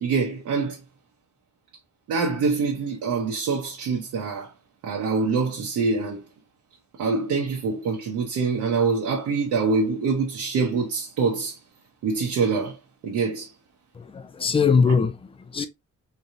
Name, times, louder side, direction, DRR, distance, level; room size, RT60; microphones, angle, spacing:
voice 1, 0.0-0.8 2.1-4.5 4.8-6.2 7.0-11.6 12.0-12.8 13.0-13.5, right 4 dB, 80° right, 1.0 m, -25 dB
voice 2, 13.9-15.7, left 5 dB, 20° left, 0.5 m, -22 dB
3.8 x 3.3 x 2.7 m
cardioid pair, 145°, 30 cm